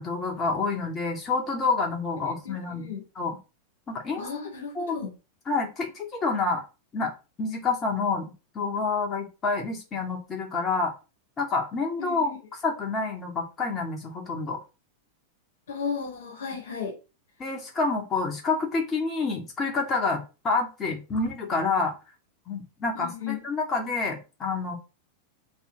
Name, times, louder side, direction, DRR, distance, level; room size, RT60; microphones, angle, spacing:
voice 1, 0.0-3.4 3.9-4.3 4.7-5.0 5.5-6.6 6.9-7.1 7.4-10.9 11.4-14.6 17.4-21.9 22.5-24.8, left 4 dB, 25° left, 2 dB, 2.6 m, -28 dB
voice 2, 2.4-3.0 4.2-5.1 12.0-12.4 15.7-16.9 22.9-23.4, left 6 dB, 60° left, -3 dB, 2.8 m, -34 dB
5.5 x 4.4 x 6.2 m, 0.30 s
figure-of-eight pair, 90°, 0 cm